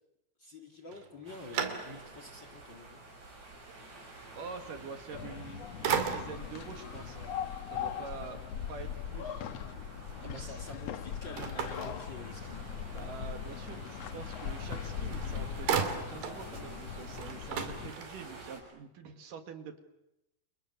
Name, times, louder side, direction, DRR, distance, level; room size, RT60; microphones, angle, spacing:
voice 1, 0.4-3.0 10.2-12.7, left 2 dB, 35° left, 7 dB, 2.2 m, -47 dB
sound 1, 0.9-2.3 2.8-2.9 5.2-5.5 5.8-6.6 11.4-12.6 14.7-14.8 15.1-16.4 16.8-16.9 17.1-18.4, right 7 dB, 85° right, 4.5 m, -35 dB
sound 2, 1.2-18.6, right 2 dB, 45° right, 8.0 m, -50 dB
voice 2, 4.3-7.3 7.7-8.4 8.7-9.4 10.2-10.6 12.9-19.8, right 5 dB, 60° right, 7 dB, 3.3 m, -46 dB
sound 3, 5.1-17.9, left 8 dB, 70° left, 1.6 m, -40 dB
30.0 x 29.5 x 6.7 m, 0.89 s
omnidirectional pair, 4.5 m